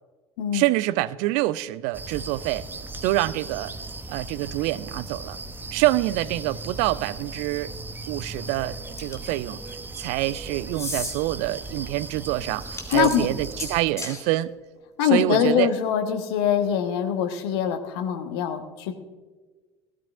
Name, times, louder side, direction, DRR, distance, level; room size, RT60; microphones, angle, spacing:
voice 1, 0.5-2.7 3.0-3.7 4.1-5.4 5.7-7.7 8.1-9.6 10.0-14.5 15.0-15.7, right 17 dB, 50° right, 20 dB, 0.4 m, -26 dB
sound 1, 1.9-13.8, right 2 dB, 15° right, 0.8 m, -37 dB
sound 2, 9.0-9.4 10.7-11.1 12.6-14.2, left 2 dB, 20° left, 2.9 m, -33 dB
voice 2, 12.9-13.3 15.0-18.9, left 9 dB, 60° left, 7 dB, 1.2 m, -23 dB
18.0 x 13.5 x 2.5 m, 1.3 s
figure-of-eight pair, 60°, 15 cm